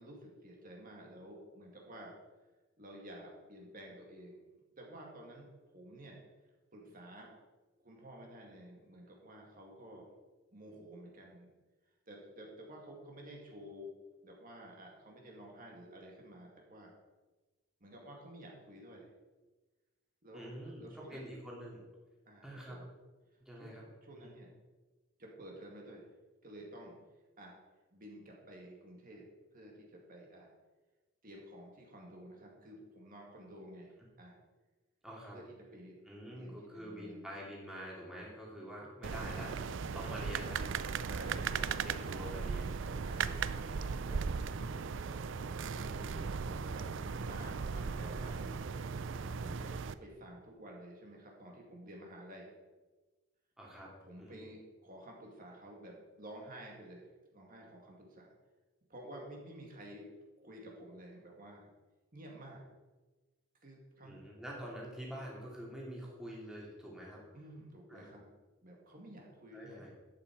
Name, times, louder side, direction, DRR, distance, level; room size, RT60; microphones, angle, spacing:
voice 1, 0.0-2.1 2.8-4.4 4.8-6.2 6.7-7.3 7.8-10.1 10.5-11.5 12.1-13.9 14.2-16.9 17.8-19.1 20.2-21.3 22.3-22.9 23.6-24.5 25.2-26.1 26.4-27.0 27.4-27.5 27.9-30.5 31.2-34.4 35.3-36.0 36.4-37.3 41.2-41.5 43.0-43.4 43.8-44.9 45.6-48.6 49.2-52.5 54.0-58.3 58.9-60.0 60.4-61.7 62.1-62.7 63.6-64.2 67.3-68.3 68.6-69.9, right 1 dB, 40° right, -1 dB, 2.2 m, -52 dB
voice 2, 20.3-21.8 22.4-22.8 23.4-23.9 24.2-24.3 35.0-35.4 36.1-39.6 39.9-40.7 41.1-43.9 53.6-54.4 64.0-67.2 67.9-68.1 69.5-69.9, equal, 5° right, -4 dB, 2.4 m, -47 dB
sound 1, 39.0-49.9, right 5 dB, 60° right, 0.5 m, -37 dB
11.5 x 8.7 x 4.7 m, 1.2 s
head